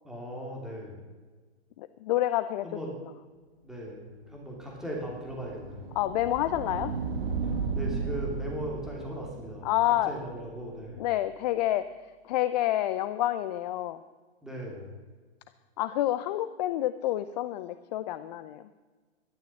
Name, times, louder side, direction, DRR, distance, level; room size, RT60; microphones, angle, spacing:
voice 1, 0.0-1.1 2.6-3.0 3.6-6.0 7.7-11.0 14.4-14.9, equal, ahead, -2 dB, 3.0 m, -38 dB
voice 2, 1.8-2.7 6.0-6.9 9.6-10.1 11.0-11.8 12.3-14.0 15.8-18.6, left 14 dB, 40° left, 13 dB, 0.6 m, -28 dB
sound 1, 4.6-11.4, right 5 dB, 60° right, 2.4 m, -36 dB
12.5 x 12.0 x 7.6 m, 1.4 s
hypercardioid pair, 125°, 33 cm